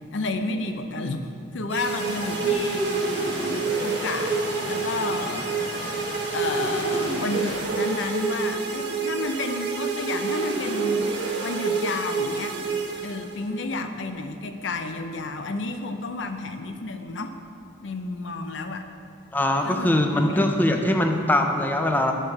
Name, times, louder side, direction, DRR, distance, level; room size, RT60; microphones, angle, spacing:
voice 1, 0.0-2.9 3.8-11.1 11.4-12.6 13.0-17.3 17.8-18.9 19.6-20.5, left 3 dB, 90° left, 7 dB, 0.6 m, -31 dB
sound 1, 1.7-13.5, right 4 dB, 65° right, 1.2 m, -28 dB
sound 2, 1.8-7.6, left 1 dB, 30° left, 1.6 m, -36 dB
voice 2, 19.3-22.1, left 1 dB, 10° left, 4 dB, 0.5 m, -22 dB
6.6 x 6.5 x 5.9 m, 2.4 s
head